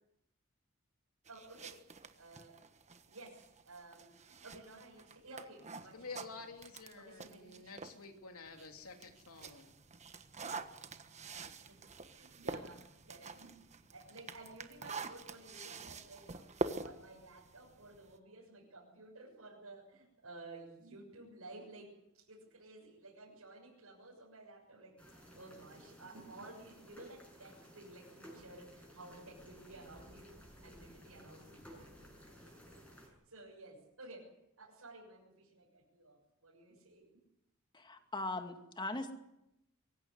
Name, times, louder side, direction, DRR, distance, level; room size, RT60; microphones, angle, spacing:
sound 1, 1.3-8.0 8.5-18.2, right 3 dB, 30° right, 1.3 m, -46 dB
voice 1, 1.3-1.8 2.2-2.6 3.1-6.1 6.9-8.0 11.6-30.3 30.6-34.3 34.6-37.1, right 2 dB, 85° right, -4 dB, 6.9 m, -54 dB
voice 2, 5.9-9.7 10.4-10.5, left 4 dB, 90° left, 4 dB, 2.9 m, -50 dB
sound 2, 25.0-33.1, equal, 5° left, 6.9 m, -56 dB
voice 3, 37.7-39.1, left 2 dB, 20° left, 6 dB, 2.3 m, -40 dB
23.5 x 16.0 x 9.7 m, 0.85 s
head